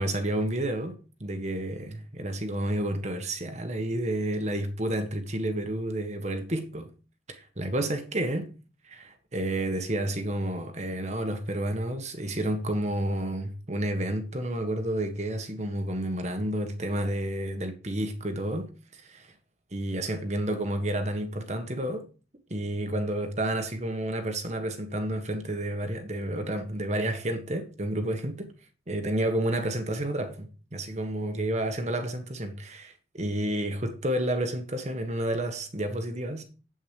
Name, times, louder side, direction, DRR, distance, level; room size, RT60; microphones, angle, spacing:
voice 1, 0.0-6.9 7.3-8.4 8.9-19.3 19.7-22.0 22.5-28.5 28.9-36.4, right 1 dB, 40° right, 1.6 m, -30 dB
8.8 x 8.4 x 4.8 m
head